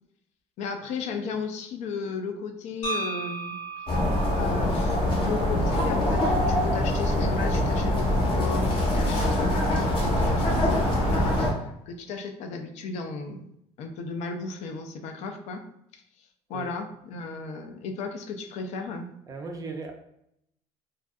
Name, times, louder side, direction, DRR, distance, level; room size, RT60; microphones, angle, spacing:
voice 1, 0.6-3.6 4.3-13.5 13.8-15.6 15.9-19.1, left 4 dB, 60° left, 5 dB, 0.4 m, -35 dB
sound 1, 2.8-6.9, right 3 dB, 85° left, 0.8 m, -37 dB
sound 2, 3.9-11.5, left 1 dB, 40° left, 0.8 m, -24 dB
voice 2, 19.3-19.9, right 4 dB, 25° right, 3 dB, 0.4 m, -36 dB
2.5 x 2.3 x 2.3 m, 0.76 s
cardioid pair, 140°, 13 cm